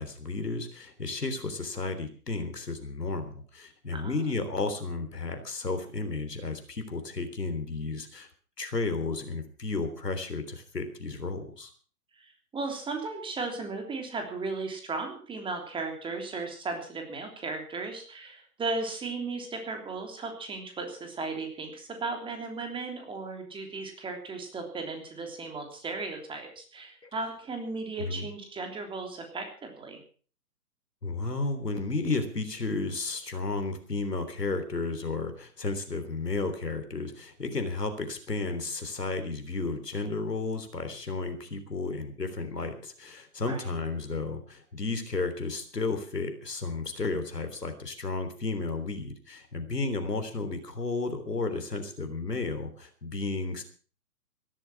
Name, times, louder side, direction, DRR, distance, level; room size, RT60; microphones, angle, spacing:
voice 1, 0.0-8.3 8.6-11.7 28.0-28.3 31.0-53.6, left 3 dB, 85° left, 8 dB, 3.6 m, -33 dB
voice 2, 3.9-4.3 12.1-30.0 43.4-43.7, right 3 dB, 10° right, 4 dB, 3.2 m, -36 dB
17.0 x 12.5 x 6.1 m, 0.42 s
figure-of-eight pair, 135°, 47 cm